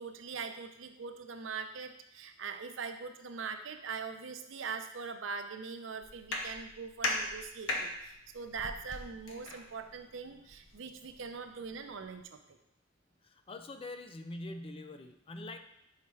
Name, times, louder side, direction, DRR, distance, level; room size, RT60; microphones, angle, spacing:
voice 1, 0.0-12.6, right 5 dB, 75° right, 7 dB, 0.6 m, -42 dB
sound 1, 6.0-12.2, left 2 dB, 75° left, 1.0 m, -40 dB
voice 2, 13.2-15.6, left 2 dB, 30° left, 7 dB, 0.4 m, -44 dB
5.7 x 4.1 x 4.7 m, 0.78 s
head